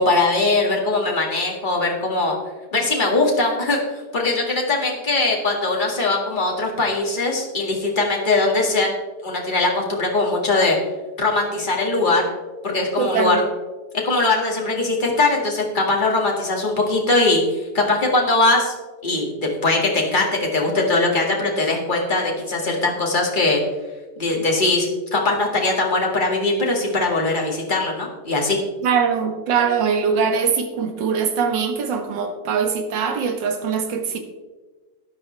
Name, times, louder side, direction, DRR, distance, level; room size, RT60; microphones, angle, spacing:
voice 1, 0.0-2.4 2.7-3.8 4.1-8.9 9.2-10.8 11.2-12.3 12.6-13.4 13.9-18.7 19.0-23.6 24.2-28.6, left 2 dB, 25° left, -1 dB, 2.0 m, -21 dB
voice 2, 13.0-13.4 28.8-34.2, right 6 dB, 85° right, 5 dB, 1.9 m, -22 dB
12.5 x 10.5 x 3.2 m, 1.3 s
omnidirectional pair, 1.9 m